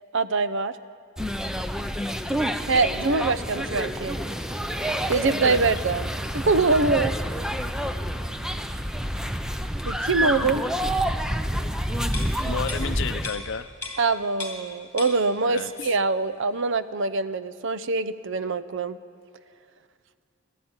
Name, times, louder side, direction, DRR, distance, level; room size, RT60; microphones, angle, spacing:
voice 1, 0.1-0.8 2.7-4.2 5.1-7.1 9.8-10.6 14.0-19.0, right 3 dB, 65° right, 13 dB, 0.7 m, -24 dB
sound 1, 1.2-13.3, equal, 5° right, 0.6 m, -28 dB
sound 2, 12.1-14.7 15.0-15.9 16.3-16.4, left 3 dB, 15° left, 3.3 m, -38 dB
voice 2, 12.4-13.7 15.5-16.0, left 6 dB, 60° left, 12 dB, 0.6 m, -32 dB
20.0 x 13.5 x 9.7 m, 2.2 s
head